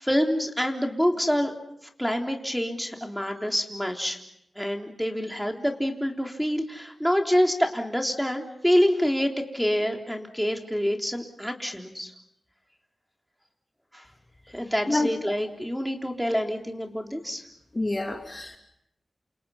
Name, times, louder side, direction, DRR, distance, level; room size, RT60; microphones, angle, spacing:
voice 1, 0.0-1.5 2.0-4.2 4.6-12.1 13.9-14.0 14.5-17.4, equal, ahead, 2 dB, 3.6 m, -26 dB
voice 2, 17.7-18.6, left 2 dB, 25° left, 3 dB, 2.7 m, -27 dB
29.0 x 28.0 x 5.7 m, 0.77 s
wide cardioid pair, 70°, 0 cm